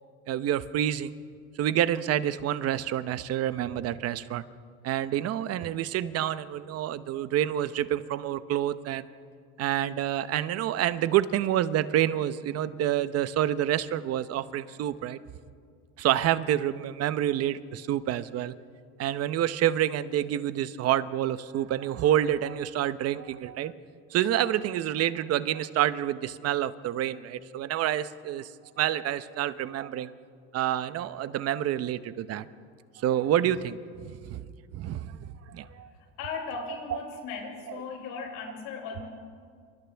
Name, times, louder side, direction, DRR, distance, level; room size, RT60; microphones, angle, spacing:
voice 1, 0.3-1.1 1.6-4.4 4.8-9.0 9.6-15.2 16.0-18.5 19.0-23.7 24.1-28.5 28.8-30.1 30.5-32.5 33.0-33.8 34.3-34.4 34.7-35.9, right 11 dB, 50° right, 14 dB, 0.8 m, -28 dB
voice 2, 35.7-39.1, left 5 dB, 80° left, 0 dB, 6.2 m, -38 dB
28.5 x 26.5 x 3.5 m, 2.2 s
cardioid pair, 120°, 32 cm